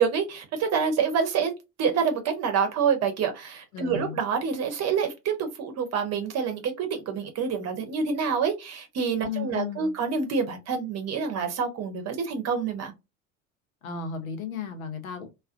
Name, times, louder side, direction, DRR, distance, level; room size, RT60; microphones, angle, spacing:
voice 1, 0.0-1.5 1.8-12.9, right 6 dB, 40° right, 0.8 m, -27 dB
voice 2, 3.7-4.2 9.2-9.9 13.8-15.3, left 6 dB, 75° left, 0.8 m, -34 dB
2.3 x 2.3 x 2.4 m
figure-of-eight pair, 70°, 42 cm